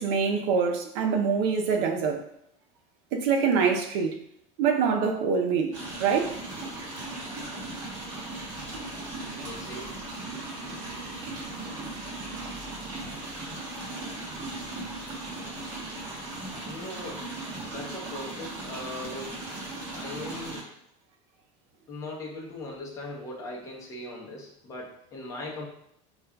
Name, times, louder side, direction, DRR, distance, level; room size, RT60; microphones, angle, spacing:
voice 1, 0.0-2.3 3.1-4.2 4.6-6.4, right 6 dB, 60° right, 3 dB, 0.6 m, -25 dB
sound 1, 5.7-20.6, right 2 dB, 25° right, 1.1 m, -37 dB
voice 2, 9.2-10.0 16.6-17.3 17.7-19.5 19.9-20.7 21.9-25.7, left 2 dB, 20° left, -3 dB, 0.8 m, -39 dB
5.3 x 2.4 x 2.2 m, 0.74 s
cardioid pair, 175°, 16 cm